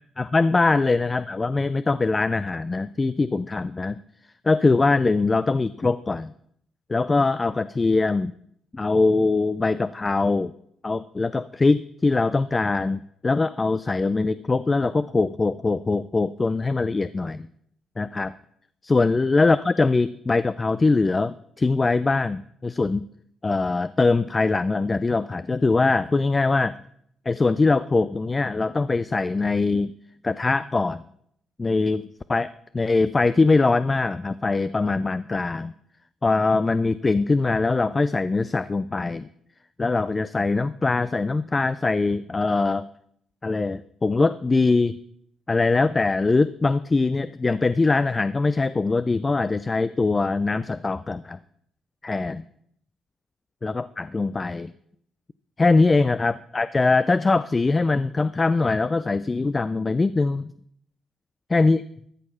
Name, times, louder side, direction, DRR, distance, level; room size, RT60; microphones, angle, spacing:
voice 1, 0.2-4.0 4.4-6.3 6.9-8.3 8.7-10.5 10.8-17.5 18.0-18.3 18.8-23.0 23.4-26.7 27.3-29.9 30.2-31.0 31.6-32.0 32.3-35.7 36.2-39.3 39.8-42.9 43.4-45.0 45.5-51.4 52.0-52.4 53.6-54.7 55.6-60.5 61.5-61.8, left 3 dB, 25° left, 15 dB, 0.3 m, -22 dB
13.0 x 6.3 x 5.6 m, 0.70 s
cardioid pair, 90°, 0 cm